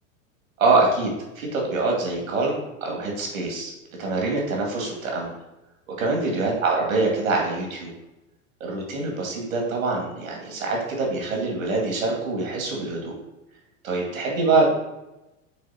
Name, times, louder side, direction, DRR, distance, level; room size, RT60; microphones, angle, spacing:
voice 1, 0.6-3.7 4.0-5.3 6.0-7.9 8.6-13.1 13.8-14.7, right 3 dB, 90° right, 0 dB, 2.3 m, -24 dB
6.5 x 3.8 x 5.7 m, 0.97 s
hypercardioid pair, 115°, 40 cm